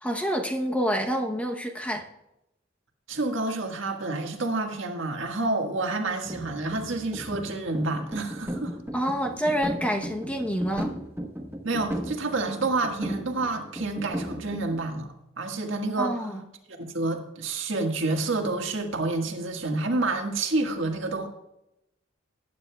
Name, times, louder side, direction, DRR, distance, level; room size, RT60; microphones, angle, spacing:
voice 1, 0.0-2.1 8.9-10.9 16.0-16.4, equal, 5° left, 3 dB, 0.8 m, -27 dB
voice 2, 3.1-8.8 11.6-16.1 16.9-21.3, right 2 dB, 75° right, 3 dB, 1.6 m, -29 dB
sound 1, 6.2-14.8, equal, 10° right, 1.1 m, -36 dB
19.5 x 9.5 x 2.3 m, 0.87 s
head